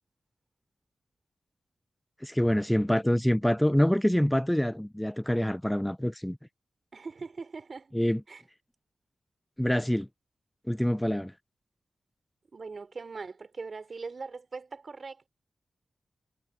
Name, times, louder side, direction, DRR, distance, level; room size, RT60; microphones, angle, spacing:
voice 1, 2.2-6.4 7.9-8.2 9.6-10.1 10.7-11.3, equal, 5° left, 0.5 m, -26 dB
voice 2, 6.9-7.9 8.3-8.4 12.5-15.3, right 4 dB, 55° right, 3.2 m, -41 dB
cardioid pair, 55°, 0 cm